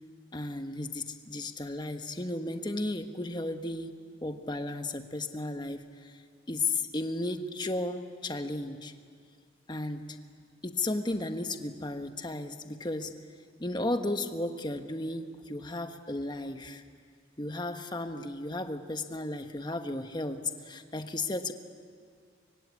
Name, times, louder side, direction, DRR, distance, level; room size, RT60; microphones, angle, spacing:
voice 1, 0.3-3.9 4.2-6.2 6.5-8.9 9.7-10.1 10.6-13.1 13.6-16.8 17.4-21.5, left 2 dB, 25° left, 7 dB, 1.2 m, -34 dB
25.0 x 23.5 x 8.3 m, 2.1 s
head